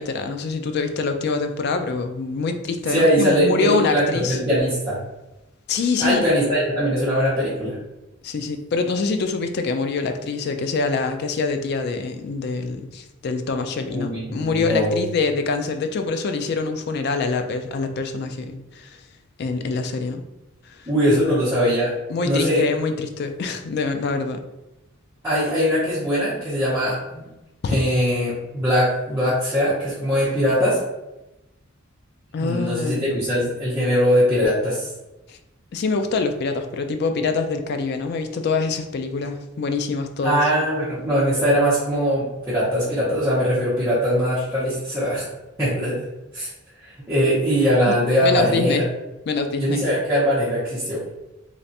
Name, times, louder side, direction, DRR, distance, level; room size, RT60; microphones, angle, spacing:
voice 1, 0.0-4.4 5.7-6.3 8.2-19.0 19.4-20.3 20.7-20.9 22.1-24.4 27.6-27.8 32.3-33.2 35.3-35.4 35.7-40.4 48.2-48.8 49.3-49.8, left 4 dB, 50° left, 7 dB, 0.3 m, -25 dB
voice 2, 2.9-5.0 6.0-7.8 13.9-15.0 20.9-22.0 22.2-22.6 25.2-27.3 27.7-30.8 32.4-34.9 40.2-45.3 45.6-46.0 46.3-46.5 46.8-48.9 49.6-51.0, equal, 10° right, -11 dB, 0.8 m, -21 dB
3.2 x 2.4 x 2.7 m, 0.95 s
head